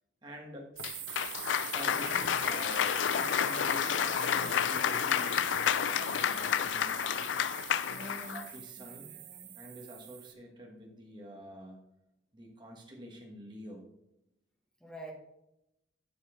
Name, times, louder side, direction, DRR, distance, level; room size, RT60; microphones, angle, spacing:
voice 1, 0.2-0.8 1.7-7.3 8.3-9.1 9.5-11.8 12.3-13.9, equal, 25° right, 0 dB, 1.4 m, -48 dB
Cheering / Applause, 0.8-8.5, left 9 dB, 85° left, 0.3 m, -30 dB
sound 1, 0.8-10.3, right 12 dB, 80° right, 0.7 m, -42 dB
voice 2, 7.9-8.4 8.8-9.6 14.8-15.1, equal, 5° left, -1 dB, 1.2 m, -47 dB
7.5 x 5.5 x 4.9 m, 0.86 s
head